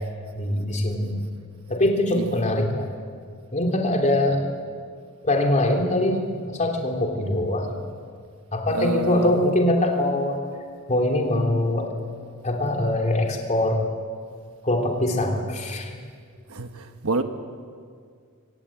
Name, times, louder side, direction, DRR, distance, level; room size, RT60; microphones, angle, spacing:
voice 1, 0.3-1.3 1.7-2.9 3.5-4.5 5.2-7.8 8.5-10.4 10.9-11.9 12.4-13.8 14.6-15.9, left 1 dB, 35° left, 3.3 m, -23 dB
voice 2, 8.7-9.3 16.5-17.2, right 2 dB, 70° right, 1.3 m, -28 dB
24.5 x 18.5 x 8.6 m
head